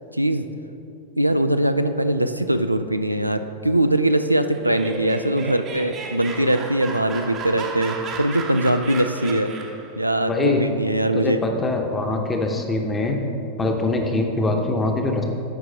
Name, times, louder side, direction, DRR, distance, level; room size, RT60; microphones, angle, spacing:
voice 1, 0.1-0.4 1.2-9.5 10.0-11.4, right 1 dB, 90° right, 8 dB, 0.3 m, -21 dB
Laughter, 4.4-9.9, right 4 dB, 30° right, 0.7 m, -34 dB
voice 2, 10.3-10.6 11.1-13.2 13.6-15.2, left 2 dB, 15° left, 2 dB, 0.8 m, -23 dB
10.0 x 4.7 x 3.8 m, 2.7 s
figure-of-eight pair, 90°, 0 cm